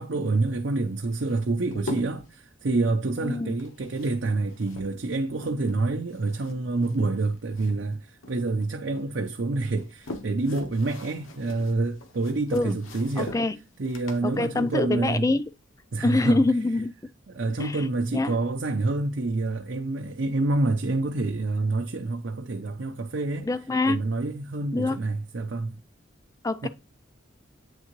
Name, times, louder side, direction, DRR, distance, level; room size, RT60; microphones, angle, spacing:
voice 1, 0.0-13.3 13.8-15.2 15.9-16.4 17.3-23.5 23.9-25.8 26.6-26.7, right 2 dB, 60° right, 0.6 m, -27 dB
sound 1, 1.1-2.4 3.5-5.8 6.1-8.0 8.2-9.1 9.6-15.7, left 2 dB, 85° left, 1.0 m, -43 dB
voice 2, 3.2-3.5 12.5-12.8 13.2-13.6 14.2-15.4 16.0-16.9 17.6-17.9 18.1-18.4 23.5-24.0 24.7-25.0 26.4-26.7, left 2 dB, 15° left, 0.3 m, -25 dB
8.9 x 3.6 x 3.0 m
head